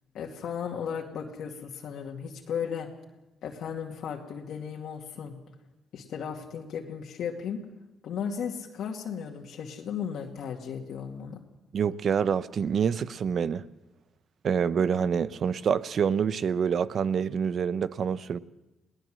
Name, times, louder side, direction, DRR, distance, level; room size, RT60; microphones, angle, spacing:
voice 1, 0.1-2.9 3.4-5.4 5.9-7.6 8.0-11.4, left 7 dB, 70° left, 2.2 m, -35 dB
voice 2, 11.7-13.6 14.4-18.4, right 7 dB, 55° right, 0.8 m, -26 dB
21.0 x 18.0 x 7.6 m
cardioid pair, 90°, 0 cm